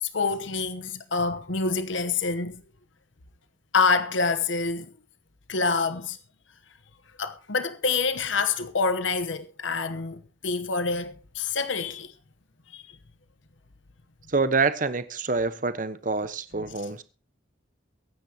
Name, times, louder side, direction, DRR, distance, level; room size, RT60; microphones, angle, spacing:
voice 1, 0.0-2.6 3.7-4.9 5.5-6.2 7.2-12.1 12.7-12.8, left 4 dB, 80° left, 1.1 m, -27 dB
voice 2, 14.3-17.0, right 4 dB, 45° right, 1.1 m, -26 dB
23.5 x 9.8 x 3.0 m
head